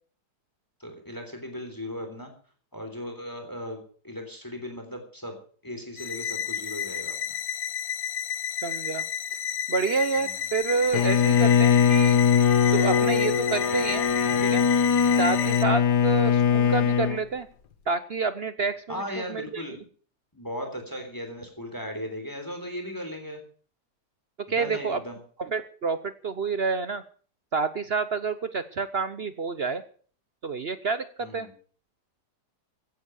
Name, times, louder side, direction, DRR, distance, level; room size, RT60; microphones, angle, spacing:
voice 1, 0.8-2.3 2.7-5.4 5.6-7.4 10.2-10.5 18.9-19.8 20.3-23.4 24.5-25.2 31.2-31.5, left 1 dB, 10° left, 5 dB, 3.6 m, -37 dB
sound 1, 6.0-15.6, left 9 dB, 60° left, 1.2 m, -32 dB
voice 2, 8.6-9.0 9.7-12.2 12.7-14.0 14.4-14.6 15.2-17.5 17.9-19.6 24.4-25.0 25.4-27.0 27.5-29.8 30.4-31.5, right 4 dB, 50° right, 12 dB, 0.8 m, -28 dB
Bowed string instrument, 10.9-17.2, left 7 dB, 75° left, 1.7 m, -21 dB
16.0 x 9.9 x 6.4 m, 0.44 s
omnidirectional pair, 1.8 m